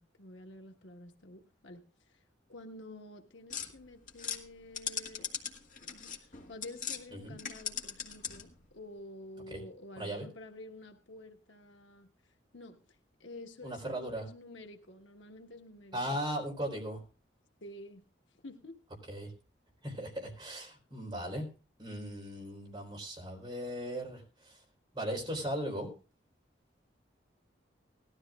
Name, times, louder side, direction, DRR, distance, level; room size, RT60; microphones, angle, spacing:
voice 1, 0.0-1.8 2.1-2.2 2.5-5.5 5.8-12.1 12.5-16.2 17.6-18.0 18.4-18.8, left 1 dB, 85° left, 4 dB, 1.4 m, -50 dB
sound 1, 3.5-7.0 7.3-8.6, left 7 dB, 45° left, 1.8 m, -40 dB
voice 2, 10.0-10.3 13.6-14.3 15.9-17.0 19.1-19.3 19.8-21.5 21.8-24.6 24.9-25.9, equal, 25° right, -1 dB, 3.9 m, -37 dB
19.0 x 13.0 x 2.4 m, 0.34 s
head